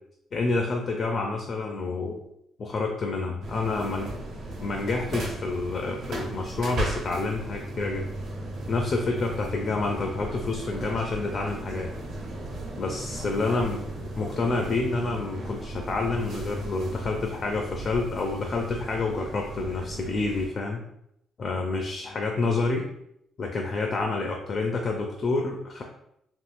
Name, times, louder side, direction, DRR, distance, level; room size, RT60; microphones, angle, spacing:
voice 1, 0.3-2.2 2.6-4.1 4.6-8.1 8.7-11.9 12.8-13.8 14.2-20.8 21.4-22.9 23.4-25.8, left 3 dB, 40° left, 2 dB, 0.4 m, -28 dB
sound 1, 3.4-20.5, right 2 dB, 65° right, 0.9 m, -36 dB
3.5 x 2.4 x 2.5 m, 0.77 s
cardioid pair, 125°, 0 cm